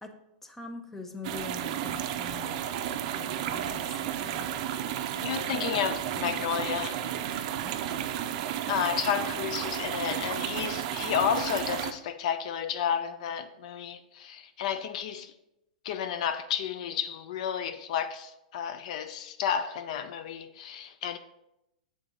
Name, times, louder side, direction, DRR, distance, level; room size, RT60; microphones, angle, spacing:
voice 1, 0.4-2.6 3.2-4.5 7.6-8.0, left 3 dB, 10° left, 0.6 m, -43 dB
sound 1, 1.2-11.9, right 10 dB, 50° right, 0.5 m, -32 dB
voice 2, 5.2-7.0 8.7-15.3 15.8-21.2, left 8 dB, 60° left, 0.3 m, -31 dB
6.7 x 3.7 x 3.8 m
hypercardioid pair, 120°, 4 cm